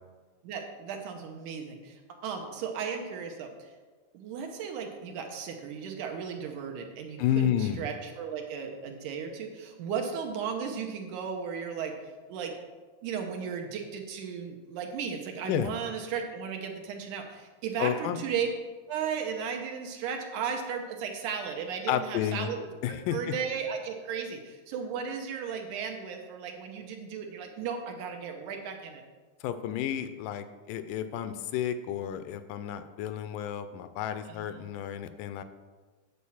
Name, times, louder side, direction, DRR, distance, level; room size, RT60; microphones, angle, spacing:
voice 1, 0.4-3.7 4.1-11.9 12.3-12.5 13.0-18.5 18.9-22.6 22.9-29.0 34.3-34.6, right 6 dB, 75° right, 3 dB, 2.2 m, -35 dB
voice 2, 7.2-7.8 15.5-15.7 17.8-18.2 21.9-22.5 22.8-23.3 29.4-35.4, left 10 dB, 80° left, 11 dB, 2.1 m, -31 dB
9.5 x 4.4 x 7.1 m, 1.4 s
omnidirectional pair, 3.9 m